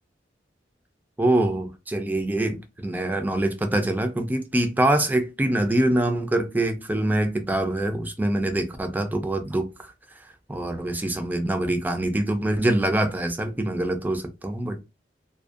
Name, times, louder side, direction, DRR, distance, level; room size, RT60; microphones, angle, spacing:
voice 1, 1.2-9.9 10.5-14.8, right 1 dB, 10° right, 0.3 m, -24 dB
2.5 x 2.1 x 2.4 m
head